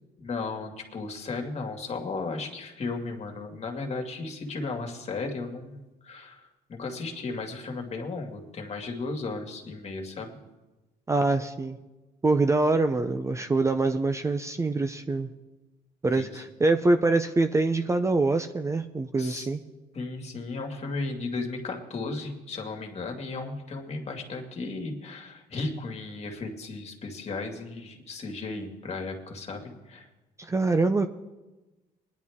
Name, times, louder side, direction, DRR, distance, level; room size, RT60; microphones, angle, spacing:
voice 1, 0.2-10.4 16.1-16.4 19.2-19.5 19.9-30.1, left 3 dB, 40° left, 3 dB, 2.2 m, -35 dB
voice 2, 11.1-11.8 12.2-15.3 16.0-19.6 30.4-31.1, right 3 dB, 15° right, 8 dB, 0.6 m, -24 dB
21.0 x 10.5 x 3.6 m, 1.1 s
cardioid pair, 110°, 17 cm